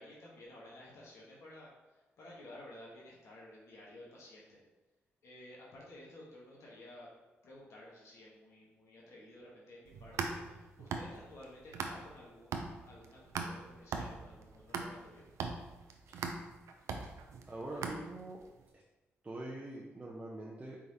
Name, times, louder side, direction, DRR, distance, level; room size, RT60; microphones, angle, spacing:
voice 1, 0.0-4.6 5.2-7.1 7.4-15.2, left 1 dB, 75° left, -4 dB, 1.1 m, -54 dB
sound 1, 9.9-12.2 12.5-18.5, right 4 dB, 85° right, 0.4 m, -40 dB
voice 2, 17.5-18.4 19.2-20.8, right 2 dB, 25° right, -3 dB, 0.7 m, -44 dB
4.6 x 3.7 x 2.7 m, 1.1 s
cardioid pair, 65°, 5 cm